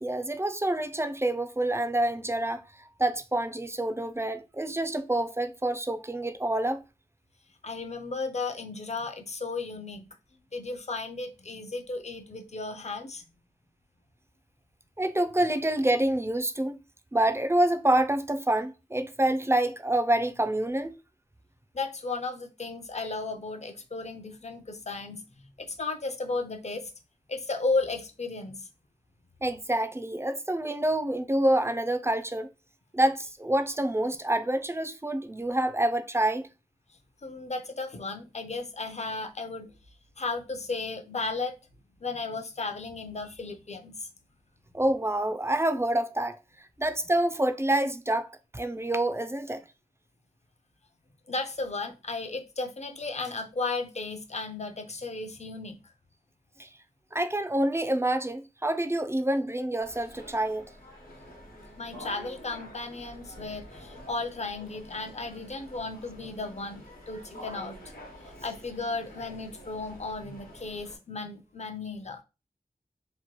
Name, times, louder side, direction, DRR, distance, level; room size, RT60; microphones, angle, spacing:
voice 1, 0.0-6.8 15.0-16.8 17.1-20.9 29.4-32.5 32.9-36.5 44.7-46.3 46.8-49.6 56.6-56.7 57.1-60.6, right 1 dB, 15° right, 0.3 m, -27 dB
voice 2, 7.6-10.1 10.5-13.2 21.7-25.2 25.6-26.9 27.3-28.7 37.2-39.7 40.2-41.5 42.0-44.1 51.3-55.8 61.8-67.8 68.4-72.2, left 3 dB, 45° left, 0.5 m, -34 dB
sound 1, 59.8-71.0, equal, 70° left, 0.9 m, -48 dB
2.9 x 2.2 x 3.0 m
wide cardioid pair, 50°, 16 cm